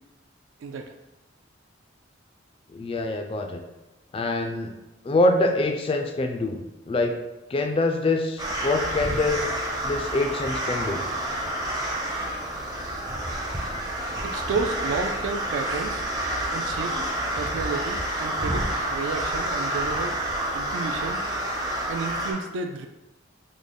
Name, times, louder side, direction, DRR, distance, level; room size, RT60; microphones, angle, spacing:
voice 1, 2.7-3.6 4.1-4.7 5.0-6.6 6.9-7.2 7.5-9.5 9.8-11.0, left 2 dB, 30° left, 4 dB, 0.3 m, -25 dB
sound 1, 8.4-22.3, right 1 dB, 20° right, 0.5 m, -29 dB
voice 2, 14.2-16.0 16.5-17.0 17.4-20.2 20.5-21.2 21.9-22.9, right 4 dB, 75° right, 5 dB, 0.3 m, -31 dB
3.7 x 2.1 x 3.3 m, 0.98 s
head